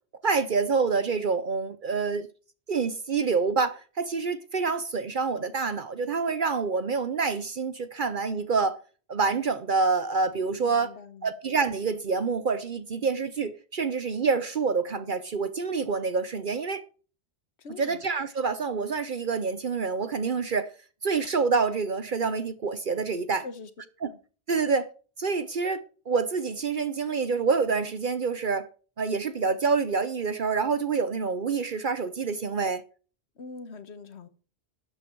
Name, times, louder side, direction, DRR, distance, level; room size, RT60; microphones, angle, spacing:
voice 1, 0.2-2.3 2.7-8.8 9.1-10.9 11.2-16.8 17.8-20.7 21.0-23.5 24.0-24.1 24.5-24.9 25.2-28.7 29.0-32.8, right 4 dB, 50° right, 0.9 m, -27 dB
voice 2, 10.6-11.3 17.6-18.0 23.4-23.7 24.1-24.2 33.4-34.3, left 4 dB, 75° left, 1.5 m, -43 dB
12.5 x 8.0 x 4.5 m
omnidirectional pair, 1.1 m